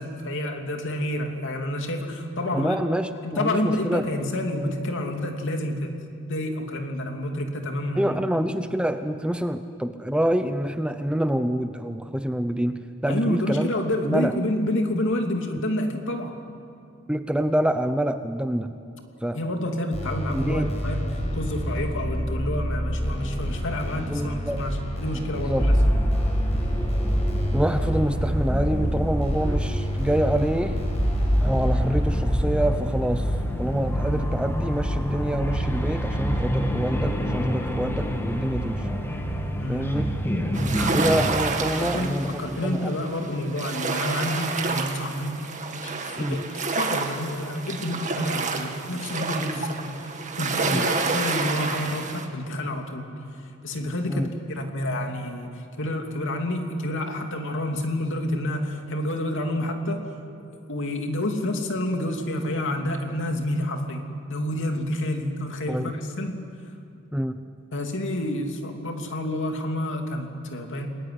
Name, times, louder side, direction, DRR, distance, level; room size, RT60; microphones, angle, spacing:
voice 1, 0.0-2.8 3.2-5.9 6.3-8.2 13.1-16.4 19.3-25.7 39.5-39.9 41.8-60.0 60.7-64.0 64.3-66.4 67.7-70.9, left 1 dB, 60° left, 4 dB, 3.0 m, -29 dB
voice 2, 2.5-4.1 8.0-13.7 14.0-14.3 17.1-18.7 19.2-19.4 20.3-20.7 24.1-24.7 25.4-25.7 27.5-30.8 31.4-38.9 39.7-40.2 40.9-42.9 46.2-46.4 50.6-50.9 54.1-54.3 65.7-65.9 67.1-67.4, right 1 dB, 5° right, 9 dB, 0.7 m, -26 dB
sound 1, 19.9-32.3, equal, 30° left, 5.5 m, -29 dB
sound 2, 25.6-41.2, equal, 10° left, 2.2 m, -26 dB
sound 3, 40.5-52.3, right 4 dB, 35° right, 2.1 m, -29 dB
30.0 x 20.5 x 9.7 m, 2.5 s
head